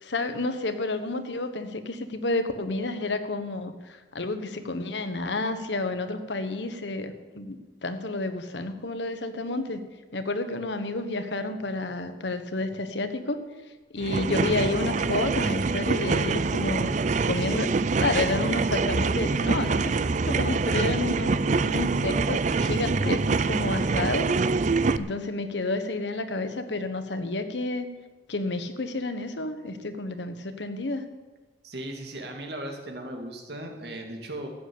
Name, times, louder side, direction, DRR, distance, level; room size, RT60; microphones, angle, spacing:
voice 1, 0.0-9.8 10.1-13.4 13.9-16.9 17.2-17.7 18.0-20.0 20.3-24.3 25.0-27.9 28.3-31.1, left 2 dB, 80° left, 9 dB, 1.2 m, -30 dB
sound 1, 14.0-25.0, right 4 dB, 40° right, 0.4 m, -25 dB
voice 2, 31.6-34.5, right 1 dB, 65° right, 2 dB, 2.3 m, -37 dB
13.5 x 7.9 x 8.6 m, 1.2 s
head